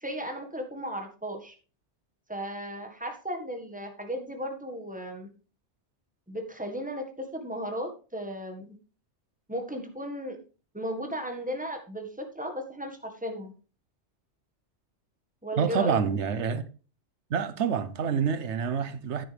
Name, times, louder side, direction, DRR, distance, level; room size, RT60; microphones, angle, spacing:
voice 1, 0.0-1.5 2.3-5.3 6.3-8.7 9.5-10.4 10.7-13.5 15.4-16.0, equal, 5° right, 1.7 m, -35 dB
voice 2, 15.6-16.6 17.3-19.2, right 6 dB, 75° right, 1.2 m, -27 dB
10.0 x 9.6 x 3.4 m
omnidirectional pair, 1.2 m